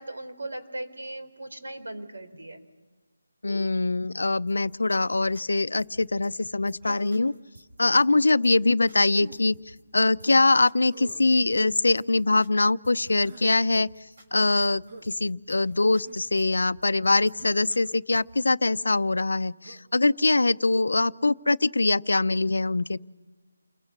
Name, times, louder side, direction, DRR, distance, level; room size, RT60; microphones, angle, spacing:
voice 1, 0.0-2.6, right 1 dB, 75° right, 6 dB, 4.0 m, -38 dB
voice 2, 3.4-7.3 7.8-9.6 9.9-13.9 14.3-23.0, left 2 dB, 85° left, 14 dB, 0.6 m, -23 dB
sound 1, 4.5-18.4, right 1 dB, 35° right, 5.1 m, -53 dB
Human voice, 6.8-7.4 9.1-9.4 10.9-11.3 12.9-13.5 14.9-15.1 16.0-16.3 17.4-18.0 19.6-19.9, right 3 dB, 20° right, 0.9 m, -46 dB
29.0 x 23.0 x 6.0 m, 1.3 s
figure-of-eight pair, 175°, 0 cm